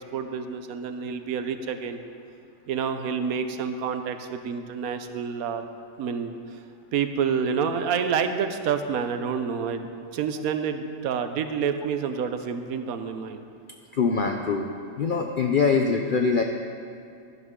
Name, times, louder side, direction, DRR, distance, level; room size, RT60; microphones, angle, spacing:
voice 1, 0.1-2.0 2.7-5.6 6.0-6.3 6.9-13.4, right 6 dB, 75° right, 8 dB, 1.1 m, -28 dB
voice 2, 13.9-14.7 15.0-16.4, left 5 dB, 65° left, 3 dB, 0.5 m, -23 dB
12.0 x 11.0 x 3.7 m, 2.4 s
omnidirectional pair, 1.5 m